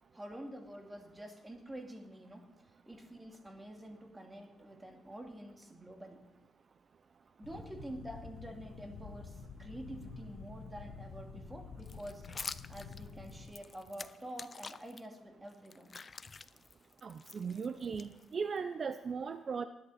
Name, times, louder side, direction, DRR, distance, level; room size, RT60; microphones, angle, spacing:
voice 1, 0.1-6.2 7.4-12.3 12.7-15.9, right 1 dB, 15° right, 3 dB, 2.6 m, -48 dB
sound 1, 7.4-13.5, left 5 dB, 85° left, 1.3 m, -49 dB
sound 2, 11.8-15.0 15.5-18.6, left 4 dB, 35° left, 0.6 m, -47 dB
voice 2, 17.0-19.7, right 5 dB, 45° right, 10 dB, 0.6 m, -38 dB
20.0 x 10.5 x 4.2 m, 0.98 s
cardioid pair, 90°, 0 cm